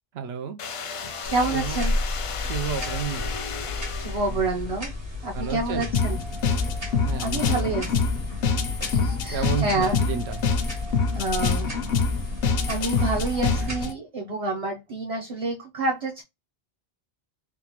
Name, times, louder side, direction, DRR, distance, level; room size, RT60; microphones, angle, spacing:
voice 1, 0.1-0.6 1.5-1.8 2.4-3.3 4.3-4.4 5.3-5.9 7.0-7.7 9.3-10.4, right 7 dB, 85° right, 0.8 m, -31 dB
sound 1, 0.6-4.6, left 5 dB, 55° left, 0.3 m, -35 dB
sound 2, 1.2-13.9, left 2 dB, 55° right, 1.6 m, -32 dB
voice 2, 1.3-1.9 4.0-4.9 5.2-6.2 7.2-8.0 8.8-10.0 11.1-11.7 12.7-16.2, right 2 dB, 40° right, 0.7 m, -28 dB
sound 3, 5.9-13.9, left 5 dB, 75° left, 0.8 m, -26 dB
3.6 x 2.4 x 2.9 m
omnidirectional pair, 1.0 m